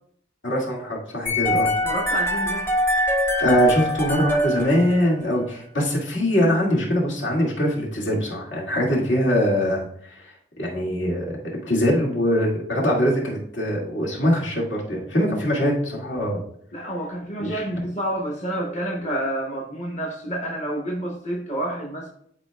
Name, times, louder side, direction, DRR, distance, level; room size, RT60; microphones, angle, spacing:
voice 1, 0.4-1.7 3.4-9.8 10.6-11.3 11.7-16.4 17.4-17.6, equal, 80° left, -3 dB, 2.1 m, -22 dB
sound 1, 1.3-5.4, equal, 15° left, 0.6 m, -23 dB
voice 2, 1.8-2.7 16.7-22.1, right 1 dB, 40° left, -1 dB, 0.9 m, -29 dB
12.0 x 4.2 x 2.3 m, 0.66 s
head